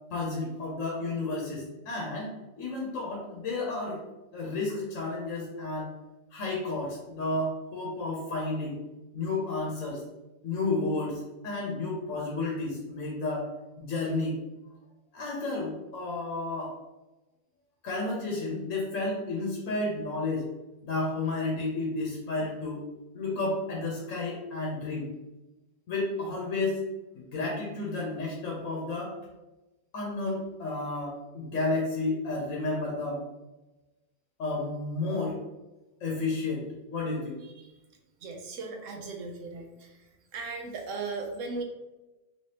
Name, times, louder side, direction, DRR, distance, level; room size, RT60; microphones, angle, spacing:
voice 1, 0.1-4.0 4.3-5.9 6.3-8.8 9.1-10.0 10.4-13.5 13.8-14.4 15.1-16.7 17.8-20.5 20.8-22.8 23.1-25.1 25.9-26.8 27.2-29.1 29.9-33.2 34.4-35.3 36.0-37.4, left 2 dB, 90° left, -2 dB, 1.1 m, -31 dB
voice 2, 38.2-39.7 40.3-41.6, right 3 dB, 85° right, 2 dB, 1.0 m, -37 dB
3.2 x 3.1 x 2.8 m, 1.1 s
omnidirectional pair, 1.3 m